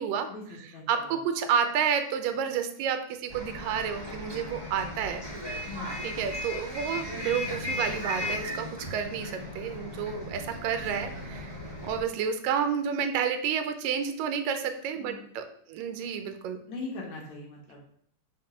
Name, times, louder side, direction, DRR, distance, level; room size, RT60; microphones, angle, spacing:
voice 1, 0.3-1.2 5.7-6.0 15.0-15.2 16.7-17.8, left 3 dB, 60° left, -1 dB, 2.5 m, -40 dB
voice 2, 0.9-5.2 6.0-11.5 11.8-16.6, right 7 dB, 85° right, 8 dB, 2.3 m, -30 dB
Bus, 3.3-12.0, left 1 dB, 15° right, 0.9 m, -36 dB
6.0 x 4.6 x 6.0 m, 0.63 s
omnidirectional pair, 3.8 m